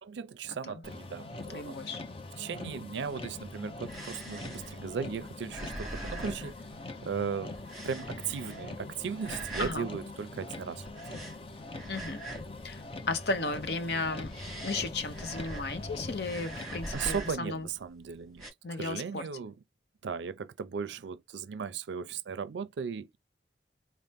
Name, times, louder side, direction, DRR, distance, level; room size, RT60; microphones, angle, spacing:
voice 1, 0.0-1.8 2.4-6.5 7.0-7.5 7.8-10.8 11.1-11.2 16.9-18.5 18.7-19.6 20.0-23.2, right 6 dB, 90° right, 0.4 m, -37 dB
Motor vehicle (road), 0.8-16.9, left 2 dB, 30° left, 0.5 m, -43 dB
voice 2, 1.5-2.0 9.6-9.9 11.9-12.2 12.6-14.3 14.6-17.7 18.6-19.2, left 3 dB, 65° left, 0.7 m, -34 dB
sound 1, 3.8-7.2 7.5-8.8 9.2-9.8 10.9-12.6 12.9-13.5 14.0-15.9 16.1-17.6 18.3-18.5, right 1 dB, ahead, 2.0 m, -42 dB
4.1 x 2.0 x 3.4 m
head